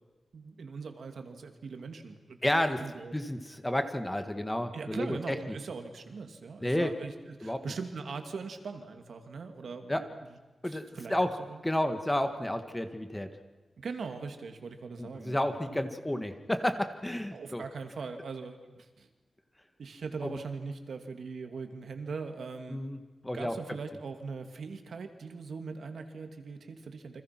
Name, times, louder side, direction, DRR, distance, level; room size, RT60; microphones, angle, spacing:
voice 1, 0.3-2.4 2.8-3.1 4.7-10.4 10.6-11.6 13.8-16.0 17.3-19.1 19.8-22.8 23.3-27.2, right 4 dB, 75° right, 6 dB, 2.6 m, -41 dB
voice 2, 2.4-2.8 3.1-5.5 6.6-6.9 7.4-7.6 9.9-10.0 10.6-11.3 11.6-13.3 15.0-17.6 20.2-20.4 22.7-23.0 23.2-23.5, left 1 dB, 10° left, 8 dB, 1.8 m, -31 dB
29.5 x 25.5 x 6.1 m, 1.2 s
wide cardioid pair, 135°, 0 cm